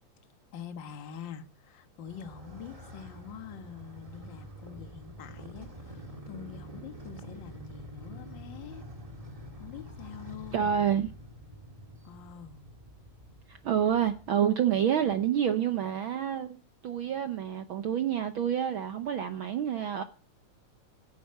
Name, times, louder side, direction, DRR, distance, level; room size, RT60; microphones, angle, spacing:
voice 1, 0.5-8.8 9.6-10.7 12.0-12.6, left 8 dB, 50° left, 1.7 m, -45 dB
Motorcycle, 2.1-14.3, right 1 dB, 15° right, 1.5 m, -47 dB
voice 2, 10.5-11.1 13.5-16.6 16.8-20.0, right 9 dB, 75° right, 1.1 m, -28 dB
15.5 x 9.3 x 6.6 m
omnidirectional pair, 3.4 m